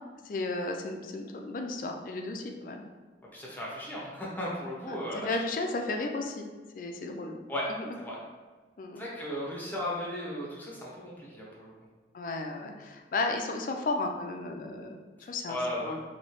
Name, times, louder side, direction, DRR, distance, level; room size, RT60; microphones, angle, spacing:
voice 1, 0.2-2.8 5.1-6.5 6.7-7.4 7.8-8.0 8.8-9.0 12.1-16.0, left 2 dB, 50° left, 3 dB, 0.3 m, -34 dB
voice 2, 3.3-5.4 7.5-7.7 8.0-8.2 9.0-11.7 15.5-16.0, left 1 dB, 10° left, -5 dB, 0.7 m, -36 dB
3.0 x 2.7 x 2.9 m, 1.4 s
head